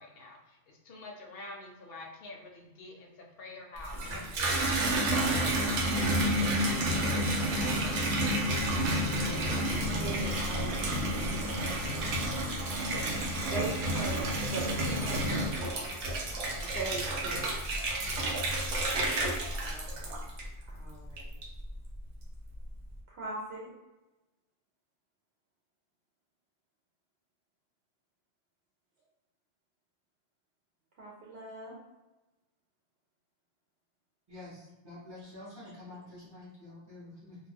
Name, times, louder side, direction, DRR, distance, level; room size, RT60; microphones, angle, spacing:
voice 1, 0.0-5.7 6.7-7.1 17.3-17.4, left 2 dB, 65° left, 1 dB, 0.7 m, -47 dB
Water tap faucet / Bathtub (filling or washing), 3.8-20.7 21.2-21.7, right 1 dB, 90° right, 1.0 m, -30 dB
voice 2, 7.9-12.2 13.3-16.3 16.6-17.5 18.9-20.2 20.7-21.3 23.1-23.7 31.0-31.7, right 3 dB, 65° right, -4 dB, 0.8 m, -42 dB
voice 3, 34.3-37.4, left 2 dB, 25° right, -9 dB, 0.7 m, -48 dB
2.3 x 2.2 x 3.3 m, 1.1 s
omnidirectional pair, 1.2 m